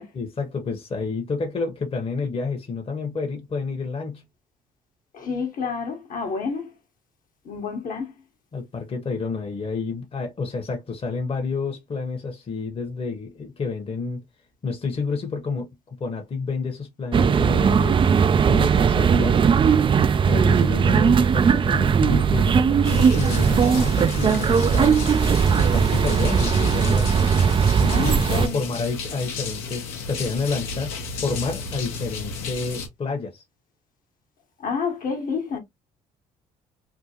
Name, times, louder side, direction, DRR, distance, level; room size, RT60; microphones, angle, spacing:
voice 1, 0.1-4.2 8.5-14.2 14.6-15.7 16.0-18.0 18.4-19.4 20.2-25.1 25.6-27.2 27.8-33.4, left 4 dB, 35° left, 1.1 m, -29 dB
voice 2, 5.1-6.7 7.4-8.1 20.4-20.6 27.9-28.6 34.6-35.6, left 5 dB, 55° left, 1.3 m, -29 dB
sound 1, 17.1-28.5, right 6 dB, 30° right, 0.4 m, -19 dB
sound 2, 22.8-32.9, left 4 dB, 80° left, 1.1 m, -33 dB
3.6 x 2.2 x 2.9 m
hypercardioid pair, 60°, 16 cm